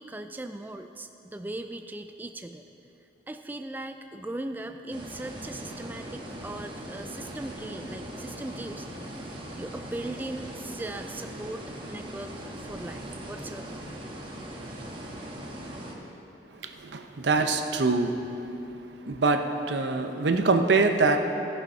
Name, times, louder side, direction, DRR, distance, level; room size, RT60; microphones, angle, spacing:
voice 1, 0.0-2.6 3.3-11.6 11.9-12.3 12.6-13.8, right 1 dB, 10° right, 7 dB, 0.3 m, -39 dB
sound 1, 4.9-15.9, right 1 dB, 30° right, 1.3 m, -40 dB
voice 2, 16.6-18.2 18.7-18.8 19.0-21.2, right 3 dB, 80° right, 6 dB, 0.8 m, -24 dB
16.0 x 6.9 x 5.6 m, 2.9 s
head